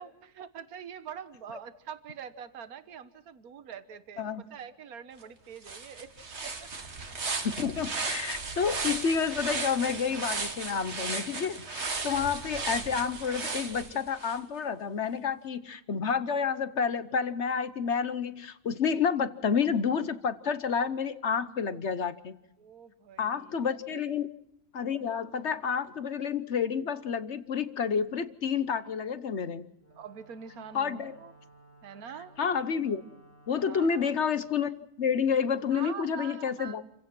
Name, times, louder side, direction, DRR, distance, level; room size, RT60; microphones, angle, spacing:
voice 1, 0.0-6.1 6.4-6.7 22.6-23.6 23.9-24.1 29.9-31.3 31.8-32.3 33.7-34.1 35.7-36.8, right 7 dB, 75° right, 11 dB, 1.6 m, -44 dB
sound 1, 5.2-5.3 5.6-14.4, right 4 dB, 45° right, 1.9 m, -35 dB
voice 2, 7.2-22.3 23.2-24.3 24.7-29.6 30.7-31.1 32.4-33.0 33.5-36.8, left 6 dB, 50° left, 13 dB, 1.1 m, -29 dB
Wind instrument woodwind instrument, 29.8-34.3, right 1 dB, 10° left, 2.4 m, -57 dB
28.5 x 16.0 x 6.0 m, 0.85 s
omnidirectional pair, 1.6 m